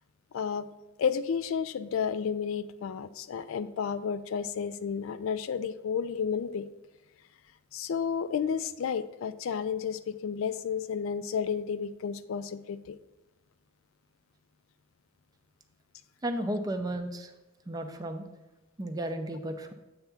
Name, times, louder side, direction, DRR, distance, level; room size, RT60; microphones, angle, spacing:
voice 1, 0.3-0.7 1.0-6.7 7.7-13.0, left 6 dB, 65° left, 13 dB, 0.3 m, -32 dB
voice 2, 16.2-17.3 17.7-18.2 18.8-19.7, right 1 dB, 15° right, 6 dB, 0.5 m, -33 dB
7.8 x 3.5 x 5.7 m, 1.0 s
head